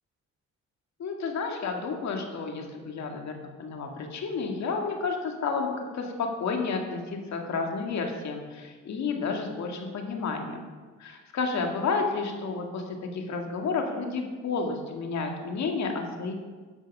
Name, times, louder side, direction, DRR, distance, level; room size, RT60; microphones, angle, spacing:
voice 1, 1.0-10.7 11.0-16.3, left 4 dB, 65° left, 3 dB, 2.0 m, -31 dB
11.0 x 7.7 x 6.2 m, 1.4 s
cardioid pair, 90°, 30 cm